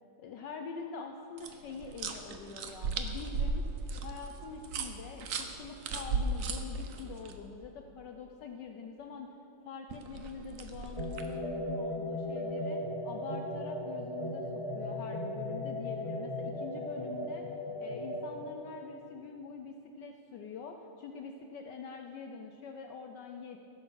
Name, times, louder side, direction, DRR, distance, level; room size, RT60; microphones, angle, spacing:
voice 1, 0.2-9.3 9.6-17.5 17.8-23.6, left 5 dB, 70° left, 4 dB, 1.0 m, -45 dB
sound 1, 1.4-7.3 9.9-11.4, right 4 dB, 75° right, 0.7 m, -36 dB
sound 2, 11.0-18.3, left 1 dB, 15° left, 1.4 m, -37 dB
15.5 x 7.0 x 6.2 m, 2.8 s
omnidirectional pair, 2.4 m